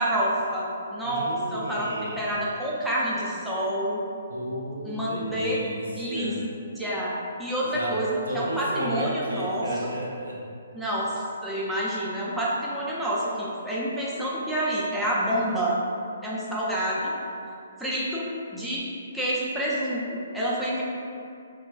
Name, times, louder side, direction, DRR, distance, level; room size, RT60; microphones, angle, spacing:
voice 1, 0.0-4.0 4.8-5.6 5.9-6.3 6.8-7.1 7.4-9.9 10.7-15.8 16.2-17.1 17.8-18.2 18.5-18.8 19.1-20.8, right 1 dB, 5° right, -8 dB, 0.4 m, -28 dB
voice 2, 1.0-2.4 4.3-6.4 7.6-8.0 8.3-10.4, right 1 dB, 75° right, -3 dB, 0.5 m, -33 dB
2.9 x 2.1 x 2.4 m, 2.4 s
figure-of-eight pair, 130°, 0 cm